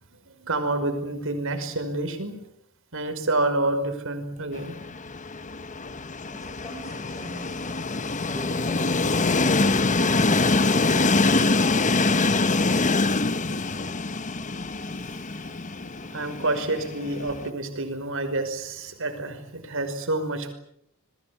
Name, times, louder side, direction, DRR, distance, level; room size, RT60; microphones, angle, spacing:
voice 1, 0.3-2.4 2.9-4.8 14.8-15.0 16.1-20.5, right 2 dB, 65° right, 8 dB, 5.4 m, -28 dB
Train, 4.5-17.5, left 3 dB, 35° left, 1.2 m, -24 dB
voice 2, 6.3-7.8, equal, 15° left, -3 dB, 7.8 m, -42 dB
28.0 x 21.5 x 8.7 m, 0.74 s
head